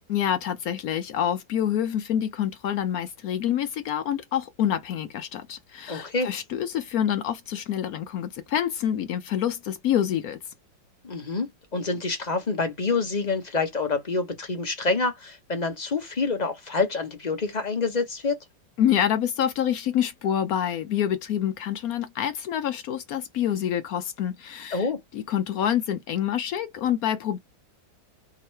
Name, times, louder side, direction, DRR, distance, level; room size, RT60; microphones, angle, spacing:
voice 1, 0.1-10.4 18.8-24.9 25.1-27.4, left 10 dB, 70° left, 0.8 m, -27 dB
voice 2, 5.9-6.3 11.0-18.4 24.7-25.0, left 3 dB, 40° left, 0.6 m, -27 dB
3.7 x 2.9 x 4.3 m
omnidirectional pair, 2.0 m